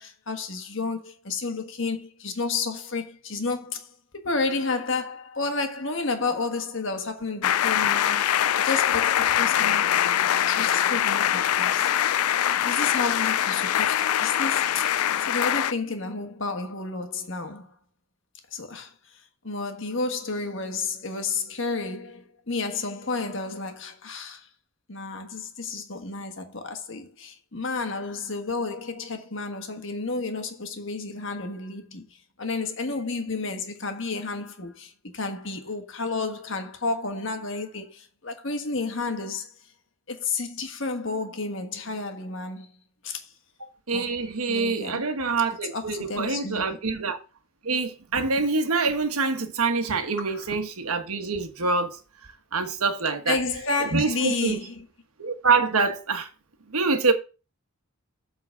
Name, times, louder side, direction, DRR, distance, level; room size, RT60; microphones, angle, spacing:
voice 1, 0.0-11.9 12.6-17.7 18.5-18.9 19.4-24.5 24.9-32.0 32.4-39.5 40.1-42.7 43.0-43.3 43.9-44.2 44.5-45.1 45.7-46.8 50.2-50.6 53.3-54.9, left 3 dB, 60° left, 1.4 m, -31 dB
sound 1, 7.4-15.7, left 11 dB, 85° left, 0.4 m, -23 dB
voice 2, 43.9-47.2 47.6-52.0 52.5-53.4 53.9-54.6 55.2-56.3 56.7-57.1, right 4 dB, 85° right, 1.3 m, -25 dB
8.6 x 4.0 x 6.3 m
head